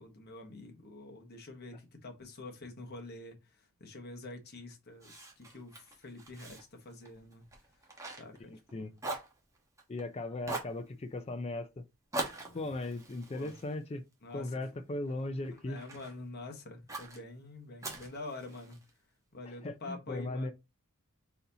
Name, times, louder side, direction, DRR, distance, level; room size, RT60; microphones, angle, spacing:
voice 1, 0.0-3.4 3.8-7.5 8.2-8.9 12.3-12.6 13.3-13.5 14.2-14.5 15.5-18.8 19.3-20.5, left 2 dB, 45° left, 1.2 m, -47 dB
Fire, 5.0-8.7 9.0-10.0 10.4-10.8 12.1-14.5 15.0-16.2 16.9-17.2 17.8-18.9, right 2 dB, 15° right, 1.0 m, -42 dB
voice 2, 8.5-8.9 9.9-11.8 12.5-14.0 14.3-15.8 19.4-20.5, left 2 dB, 30° left, 0.4 m, -38 dB
4.1 x 4.0 x 2.7 m
head